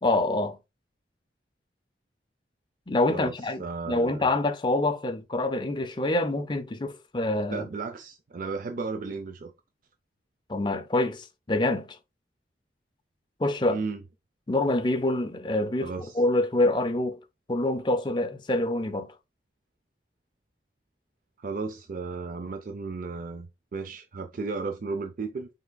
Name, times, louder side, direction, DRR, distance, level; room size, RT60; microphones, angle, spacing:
voice 1, 0.0-0.6 2.9-7.7 10.5-12.0 13.4-13.8 14.5-17.2 17.5-19.1, left 2 dB, 25° left, 0.5 m, -26 dB
voice 2, 3.6-4.3 7.5-9.5 13.7-14.0 15.8-16.1 21.4-25.5, right 4 dB, 50° right, 0.4 m, -34 dB
5.5 x 3.5 x 2.2 m
head